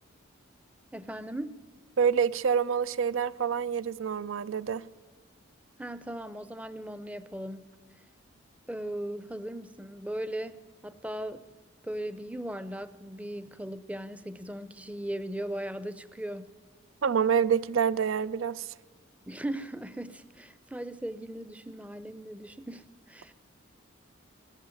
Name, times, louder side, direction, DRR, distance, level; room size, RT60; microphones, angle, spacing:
voice 1, 0.9-1.6 5.8-7.7 8.7-10.6 10.8-11.4 11.8-16.6 19.3-23.3, right 1 dB, 5° right, 14 dB, 0.5 m, -38 dB
voice 2, 2.0-4.8 17.0-18.7, right 7 dB, 70° right, 18 dB, 0.5 m, -27 dB
18.0 x 14.5 x 9.8 m, 1.4 s
head